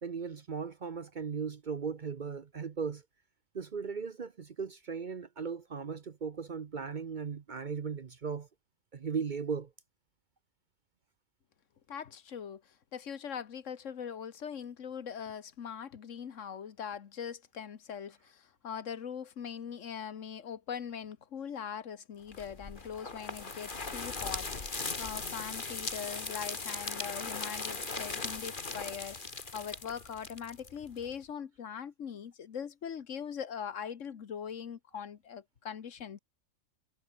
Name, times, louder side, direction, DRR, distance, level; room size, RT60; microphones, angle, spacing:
voice 1, 0.0-3.0 3.5-8.5 8.9-9.7, right 5 dB, 45° right, 0.8 m, -37 dB
voice 2, 11.9-36.2, left 7 dB, 70° left, 1.5 m, -41 dB
sound 1, 22.3-31.1, left 3 dB, 40° left, 2.1 m, -39 dB
omnidirectional pair, 1.4 m